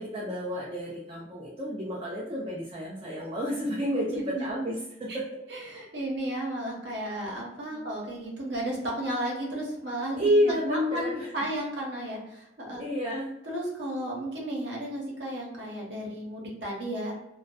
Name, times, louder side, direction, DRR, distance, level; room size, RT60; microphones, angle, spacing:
voice 1, 0.0-4.7 5.0-5.2 7.7-7.8 10.2-11.3 12.8-13.3, equal, 30° right, -5 dB, 0.4 m, -29 dB
voice 2, 4.1-4.5 5.1-5.2 5.5-12.8 13.4-17.1, right 1 dB, 75° right, -2 dB, 0.8 m, -34 dB
2.5 x 2.2 x 2.3 m, 0.86 s
head